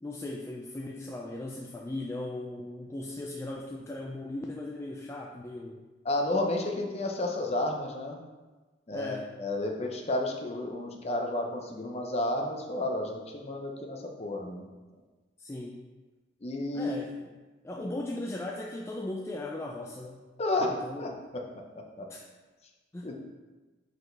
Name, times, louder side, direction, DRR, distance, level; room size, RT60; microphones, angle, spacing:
voice 1, 0.0-5.9 8.9-9.3 15.4-15.8 16.7-17.3 17.6-20.2 20.8-21.2 22.1-22.2 22.9-23.1, left 2 dB, 15° left, -1 dB, 0.3 m, -38 dB
voice 2, 6.0-8.2 8.9-14.7 16.4-17.0 20.4-21.5 21.8-22.1 23.0-23.1, left 1 dB, 30° left, 2 dB, 0.7 m, -32 dB
6.0 x 4.7 x 3.3 m, 1.2 s
head